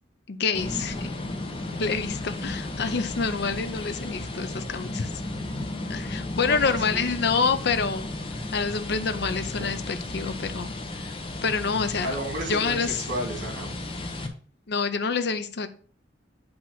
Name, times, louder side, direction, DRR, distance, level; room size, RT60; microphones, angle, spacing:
voice 1, 0.3-1.1 1.8-5.1 5.9-8.1 8.5-11.1 11.4-12.2 12.5-13.0 14.7-15.7, left 5 dB, 60° left, 9 dB, 0.6 m, -27 dB
sound 1, 0.5-14.3, left 2 dB, 30° left, 0.9 m, -34 dB
voice 2, 6.4-7.1 12.0-13.7, right 1 dB, 75° right, 0 dB, 3.0 m, -33 dB
8.6 x 2.9 x 5.7 m, 0.44 s
head